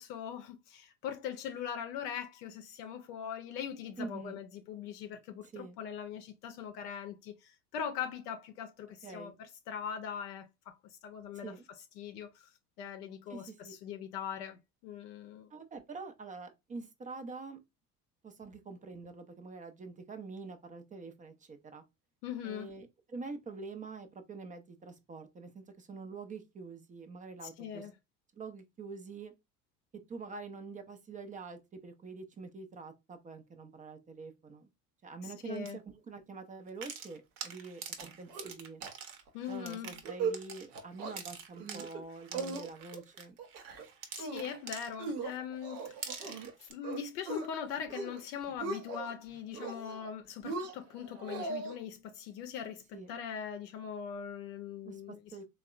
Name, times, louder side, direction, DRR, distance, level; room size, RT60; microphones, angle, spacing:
voice 1, 0.0-11.5 12.0-12.5 12.8-15.5 22.2-22.7 27.6-27.9 35.2-35.8 39.3-39.9 44.1-52.8 53.1-55.2, left 8 dB, 80° left, 0.6 m, -41 dB
voice 2, 4.0-4.4 5.4-5.8 9.0-9.4 11.3-11.6 13.3-13.7 15.5-17.6 18.2-21.8 22.4-27.9 28.3-29.3 30.1-34.7 35.0-35.8 36.1-38.8 39.5-43.3 52.9-53.1 54.8-55.4, right 4 dB, 20° right, 0.3 m, -46 dB
sound 1, 35.5-35.7 36.7-45.4 45.7-46.7, right 6 dB, 50° right, 0.8 m, -46 dB
sound 2, 38.0-38.5 38.8-38.9 39.3-39.5 39.9-40.4 40.7-41.2 41.6-42.0 42.3-43.0 43.4-43.9 44.2-44.6 45.0-46.5 46.8-47.5 47.8-48.2 48.5-49.1 49.5-50.1 50.4-51.8, right 4 dB, 75° right, 0.8 m, -39 dB
3.4 x 2.1 x 2.4 m
hypercardioid pair, 65°, 46 cm